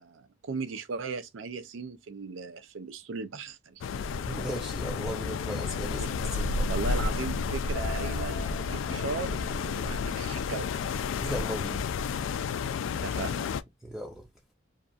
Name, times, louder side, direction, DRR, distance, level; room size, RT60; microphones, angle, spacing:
voice 1, 0.0-3.8 6.0-6.1 6.7-10.7 12.9-13.5, right 4 dB, 85° right, 0.5 m, -37 dB
sound 1, 3.8-13.6, left 5 dB, 85° left, 0.3 m, -31 dB
voice 2, 3.9-6.7 11.2-11.8 13.8-14.3, equal, 5° right, 0.4 m, -37 dB
sound 2, 7.7-12.0, left 2 dB, 40° left, 0.6 m, -42 dB
2.6 x 2.3 x 2.4 m
head